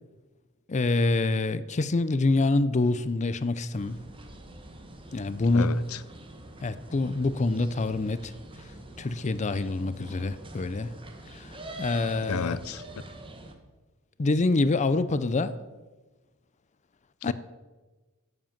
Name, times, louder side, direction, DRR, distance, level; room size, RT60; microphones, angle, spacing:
voice 1, 0.7-4.0 5.1-5.8 6.6-8.3 9.0-10.9 11.3-12.6 14.2-15.5 17.2-17.3, left 2 dB, 35° left, 0.5 m, -26 dB
sound 1, 3.7-13.5, right 2 dB, 25° right, 1.3 m, -45 dB
voice 2, 5.5-6.0 12.2-13.0 17.2-17.3, left 6 dB, 85° left, 0.6 m, -32 dB
11.0 x 7.6 x 7.3 m
head